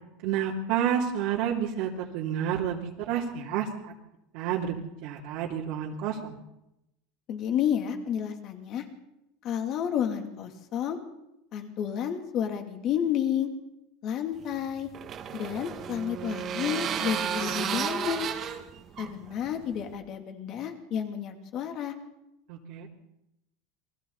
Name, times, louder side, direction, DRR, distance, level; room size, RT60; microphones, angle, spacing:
voice 1, 0.2-3.7 4.3-4.7 5.0-6.4 22.5-22.9, right 9 dB, 50° right, -3 dB, 2.9 m, -29 dB
voice 2, 7.3-8.9 9.4-11.0 11.5-13.5 14.0-14.9 15.3-18.3 19.0-21.9, left 9 dB, 35° left, 5 dB, 2.8 m, -31 dB
sound 1, 14.4-19.9, right 8 dB, 30° right, 1.8 m, -33 dB
29.0 x 23.0 x 4.1 m, 0.86 s
supercardioid pair, 165°, 0 cm